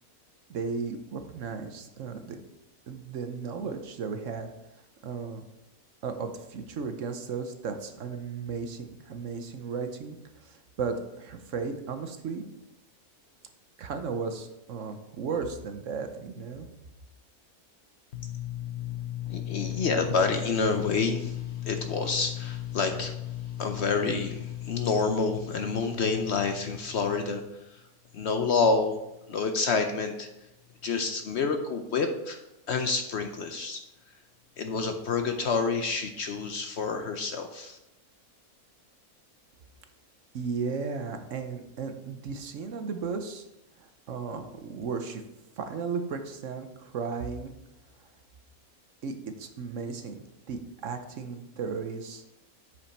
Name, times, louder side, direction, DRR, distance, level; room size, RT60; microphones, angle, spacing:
voice 1, 0.5-2.4 2.9-4.5 5.0-5.4 6.0-12.5 13.8-16.7 40.3-43.4 43.8-45.2 45.6-47.5 49.0-52.2, right 5 dB, 65° right, 7 dB, 1.0 m, -35 dB
voice 2, 18.1-27.4 28.1-29.0 29.3-30.3 30.8-32.4 32.7-33.8 34.6-37.8, left 4 dB, 60° left, 6 dB, 0.8 m, -28 dB
8.4 x 5.3 x 4.2 m, 0.90 s
omnidirectional pair, 1.5 m